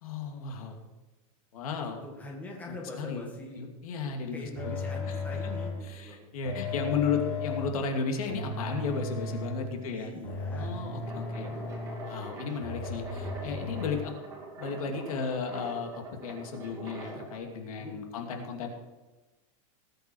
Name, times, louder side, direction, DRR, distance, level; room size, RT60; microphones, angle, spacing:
voice 1, 0.0-0.8 1.5-2.0 2.7-3.3 3.5-4.7 5.1-5.2 5.8-10.1 10.5-11.5 12.0-14.1 14.6-18.7, left 5 dB, 75° left, 3 dB, 2.6 m, -34 dB
voice 2, 1.8-3.6 4.3-6.3 6.6-7.2 9.8-10.8 11.1-11.7 17.8-18.3, left 2 dB, 10° left, -2 dB, 1.8 m, -44 dB
sound 1, 4.6-5.9 6.4-7.8 8.3-9.7 10.2-12.1 12.6-14.0, left 3 dB, 50° left, 4.3 m, -35 dB
sound 2, 11.0-17.4, right 3 dB, 15° right, 2.9 m, -44 dB
19.0 x 8.1 x 4.6 m, 1.1 s
supercardioid pair, 175°, 18 cm